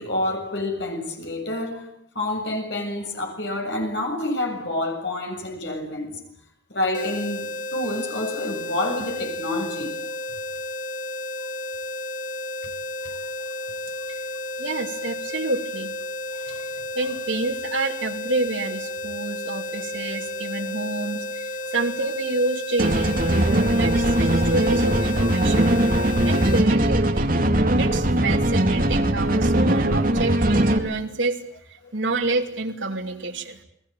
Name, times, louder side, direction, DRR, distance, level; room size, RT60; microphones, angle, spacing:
voice 1, 0.0-6.2 6.7-10.0 13.0-13.1 16.3-16.9 21.6-21.7 23.7-23.8 26.2-26.3 31.8-31.9, left 1 dB, 65° left, 7.2 m, -28 dB
sound 1, 6.9-26.7, left 1 dB, 45° left, 1.7 m, -32 dB
voice 2, 14.6-15.9 16.9-23.2 23.5-25.7 26.2-27.3 27.8-33.6, right 2 dB, 75° right, 3.0 m, -28 dB
sound 2, 22.8-30.8, right 1 dB, 45° right, 2.4 m, -20 dB
30.0 x 20.5 x 9.3 m
head